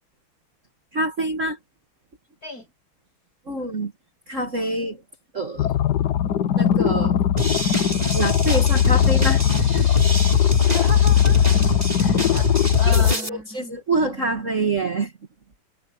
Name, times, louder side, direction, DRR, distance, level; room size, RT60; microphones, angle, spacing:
voice 1, 0.9-1.6 3.5-3.9 4.3-5.0 5.3-5.7 6.6-7.2 8.1-9.4 9.7-9.9 12.9-13.0 13.3-15.1, right 2 dB, 35° right, 1.9 m, -26 dB
sound 1, 5.6-13.1, left 10 dB, 60° left, 1.2 m, -19 dB
sound 2, 7.4-13.3, right 1 dB, 15° right, 5.1 m, -27 dB
voice 2, 10.6-13.7, left 1 dB, 40° left, 8.1 m, -36 dB
omnidirectional pair, 2.4 m